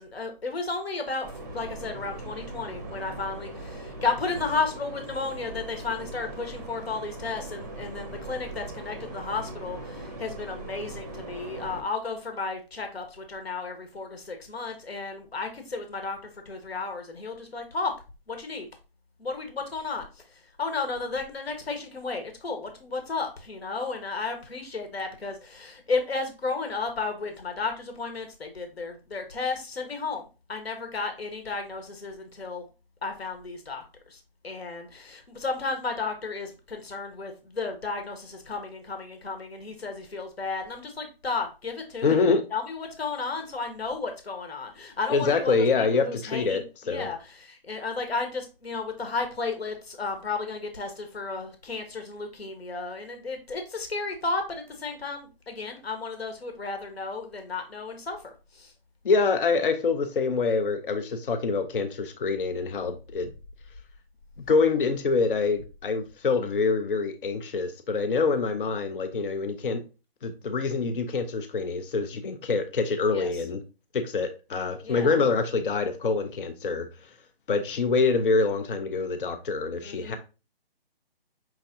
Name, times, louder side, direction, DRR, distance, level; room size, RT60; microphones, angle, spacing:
voice 1, 0.0-16.2 16.4-17.9 18.3-18.7 19.2-20.1 20.3-32.6 33.0-42.2 42.5-58.2 58.5-58.7 73.1-73.3 74.8-75.1 79.8-80.2, left 4 dB, 80° left, 5 dB, 1.3 m, -33 dB
sound 1, 1.2-11.8, right 2 dB, 20° right, 0.6 m, -40 dB
voice 2, 42.0-42.4 45.1-47.1 59.0-63.3 64.5-69.8 70.2-73.6 73.9-76.9 77.5-80.2, left 4 dB, 60° left, 8 dB, 0.6 m, -25 dB
5.8 x 3.2 x 2.6 m, 0.31 s
hypercardioid pair, 160°, 30 cm